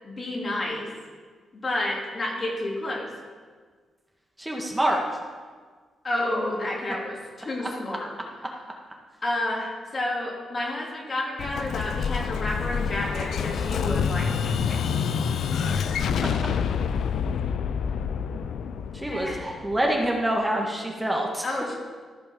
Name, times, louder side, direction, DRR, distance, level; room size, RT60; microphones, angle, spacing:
voice 1, 0.0-0.9 1.6-3.1 6.0-8.1 9.2-14.8 19.0-19.4 21.4-21.7, left 1 dB, 45° left, -2 dB, 2.6 m, -30 dB
voice 2, 4.4-5.0 18.9-21.4, right 1 dB, 15° right, -1 dB, 1.7 m, -26 dB
Explosion, 11.4-20.1, left 6 dB, 75° left, 0.5 m, -27 dB
14.0 x 5.2 x 5.2 m, 1.5 s
supercardioid pair, 60°, 0 cm